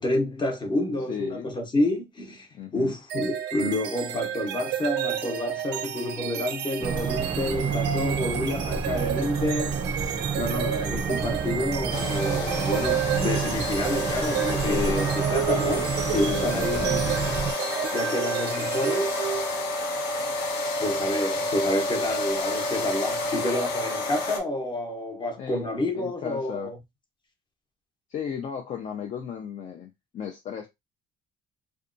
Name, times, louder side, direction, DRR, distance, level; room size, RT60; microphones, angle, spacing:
voice 1, 0.0-17.2 17.9-19.2 20.8-26.8, left 1 dB, 25° left, 0.9 m, -29 dB
voice 2, 1.1-1.5 2.5-3.0 14.7-15.0 16.3-17.0 25.4-26.7 28.1-30.7, left 8 dB, 45° left, 0.5 m, -35 dB
sound 1, 3.1-19.7, right 10 dB, 90° right, 0.5 m, -31 dB
sound 2, 6.8-17.5, right 5 dB, 30° right, 0.4 m, -30 dB
sound 3, 11.9-24.4, left 2 dB, 75° left, 0.8 m, -30 dB
2.6 x 2.2 x 2.5 m
cardioid pair, 110°, 17 cm